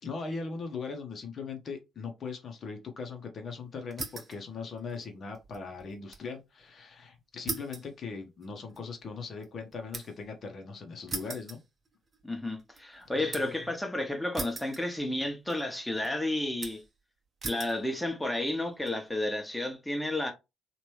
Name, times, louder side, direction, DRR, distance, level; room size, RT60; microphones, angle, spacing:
voice 1, 0.0-11.6 13.2-13.6, left 4 dB, 50° left, 0.9 m, -40 dB
sound 1, 3.9-4.4 4.8-6.3 6.6-6.7 7.5-10.3 11.1-12.2 12.6-13.6 14.3-15.2 15.5-16.1 16.6-17.0 17.4-17.8 18.5-18.9, right 3 dB, 40° right, 0.9 m, -40 dB
voice 2, 12.2-16.8 17.5-20.3, left 1 dB, 5° left, 1.1 m, -32 dB
3.1 x 2.5 x 3.2 m
hypercardioid pair, 45°, 0 cm